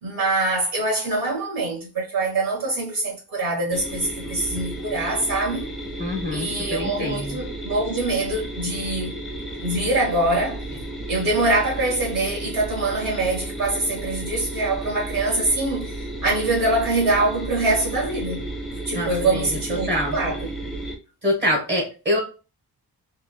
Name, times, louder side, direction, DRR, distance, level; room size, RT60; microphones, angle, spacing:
voice 1, 0.0-5.7 6.3-9.2 9.6-10.6 11.1-18.5 18.8-20.5, right 2 dB, 60° right, 1.8 m, -24 dB
sound 1, 3.7-21.0, right 1 dB, ahead, 0.6 m, -33 dB
voice 2, 6.0-7.4 18.9-19.4 19.7-20.2 21.2-22.2, left 1 dB, 25° right, 1.5 m, -25 dB
3.6 x 2.8 x 2.3 m
wide cardioid pair, 170°, 39 cm